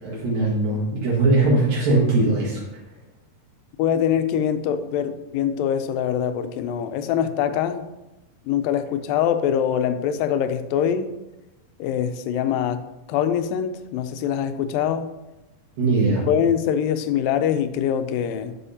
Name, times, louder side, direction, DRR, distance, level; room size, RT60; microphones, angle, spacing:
voice 1, 0.0-2.6 15.8-16.2, right 2 dB, 75° right, -7 dB, 3.4 m, -20 dB
voice 2, 3.8-7.9 8.5-11.1 11.8-12.8 13.1-15.1 16.3-18.5, left 9 dB, 85° left, 10 dB, 2.3 m, -23 dB
11.0 x 5.0 x 2.8 m, 1.0 s
omnidirectional pair, 4.0 m